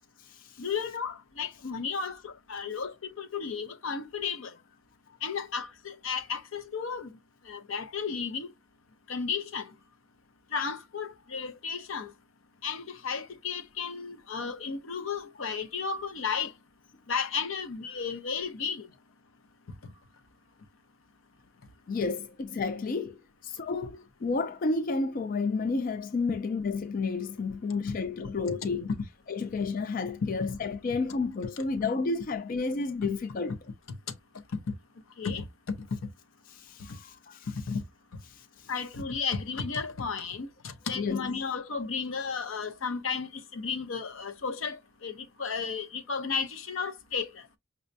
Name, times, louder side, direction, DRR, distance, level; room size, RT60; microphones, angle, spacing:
voice 1, 0.6-4.6 5.2-7.1 7.5-8.5 9.1-9.7 10.5-12.1 12.6-16.5 17.1-18.9 19.8-19.9 34.5-34.7 35.2-35.9 37.7-37.8 38.7-47.4, left 5 dB, 80° left, 0.7 m, -33 dB
voice 2, 21.9-28.9 29.3-33.6 36.5-37.5 38.3-38.7 41.0-41.3, left 4 dB, 45° left, 0.4 m, -31 dB
5.4 x 2.1 x 2.6 m
head